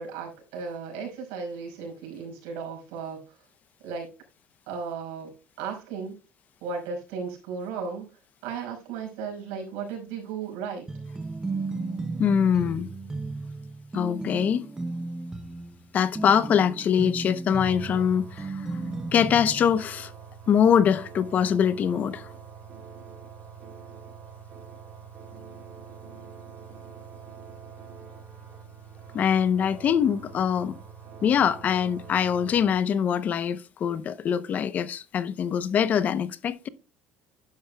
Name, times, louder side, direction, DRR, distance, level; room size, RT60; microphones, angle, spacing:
voice 1, 0.0-3.2 3.8-4.1 4.7-6.2 6.6-8.1 8.4-10.9, right 5 dB, 90° right, 5.5 m, -35 dB
sound 1, 10.9-19.8, right 3 dB, 15° right, 0.7 m, -35 dB
voice 2, 12.2-12.9 13.9-14.7 15.9-18.7 19.1-20.1 20.5-22.3 29.1-30.8 31.2-36.7, left 8 dB, 40° left, 0.7 m, -23 dB
sound 2, 17.7-32.7, right 6 dB, 40° right, 4.4 m, -45 dB
11.5 x 10.5 x 2.2 m
cardioid pair, 130°, 4 cm